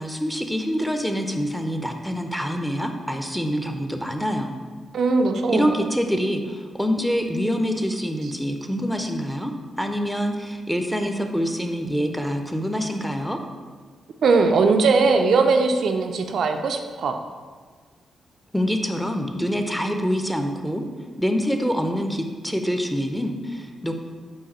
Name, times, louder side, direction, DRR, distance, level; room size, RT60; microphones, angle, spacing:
voice 1, 0.0-4.6 5.5-9.5 9.8-13.4 18.5-20.8 21.2-23.9, equal, 5° left, 5 dB, 0.5 m, -25 dB
voice 2, 4.9-5.7 14.2-17.2, right 4 dB, 70° right, 5 dB, 0.3 m, -19 dB
4.8 x 2.6 x 4.2 m, 1.5 s
supercardioid pair, 50°, 0 cm